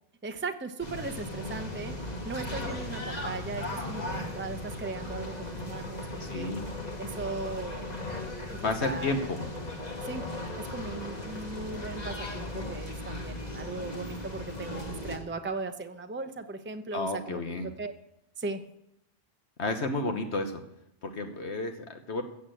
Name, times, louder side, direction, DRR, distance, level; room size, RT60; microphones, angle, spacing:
voice 1, 0.2-6.5 7.0-7.9 8.5-9.1 9.4-9.8 10.0-10.3 10.6-17.9 18.4-18.6, right 3 dB, 10° right, 7 dB, 0.7 m, -38 dB
sound 1, 0.8-15.2, left 2 dB, 35° left, 2.0 m, -37 dB
voice 2, 6.2-6.6 8.6-9.5 16.9-17.7 19.6-20.6 21.0-22.2, left 2 dB, 65° left, 6 dB, 1.4 m, -31 dB
15.5 x 7.1 x 7.7 m, 0.81 s
omnidirectional pair, 1.2 m